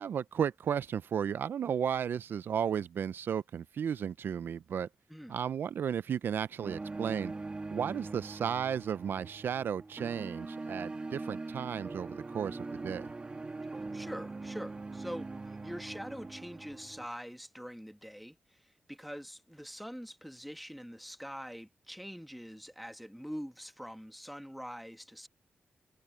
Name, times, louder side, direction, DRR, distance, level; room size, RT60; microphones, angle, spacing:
voice 1, 0.0-4.9 5.3-7.3 7.7-13.1, right 8 dB, 75° right, 0.4 m, -34 dB
sound 1, 6.6-17.1, right 3 dB, 30° right, 1.7 m, -42 dB
voice 2, 13.7-25.3, equal, ahead, 1.5 m, -44 dB
wide cardioid pair, 130°, 4 cm